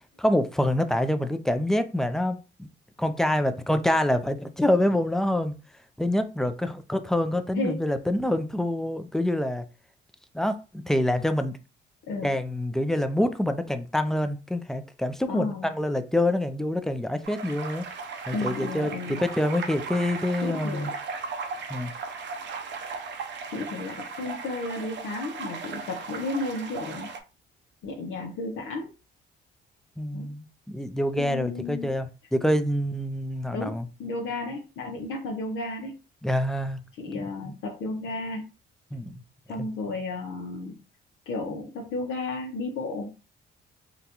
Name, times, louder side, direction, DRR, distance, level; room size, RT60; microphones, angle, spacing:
voice 1, 0.2-2.7 3.0-5.5 6.0-9.6 10.3-11.5 12.2-17.8 18.3-20.9 21.7-21.9 30.0-32.1 32.3-33.9 36.2-36.8 37.1-37.2 38.9-39.1 39.6-39.7, left 1 dB, ahead, 0.4 m, -26 dB
voice 2, 15.3-15.7 18.3-19.2 20.4-20.9 23.5-27.1 27.8-28.9 30.1-30.3 31.2-31.9 33.5-35.9 37.0-38.4 39.5-40.7 41.3-43.3, left 2 dB, 80° left, 0.7 m, -33 dB
sound 1, 17.2-27.2, right 4 dB, 65° right, 0.6 m, -37 dB
3.8 x 2.3 x 2.8 m
cardioid pair, 90°, 20 cm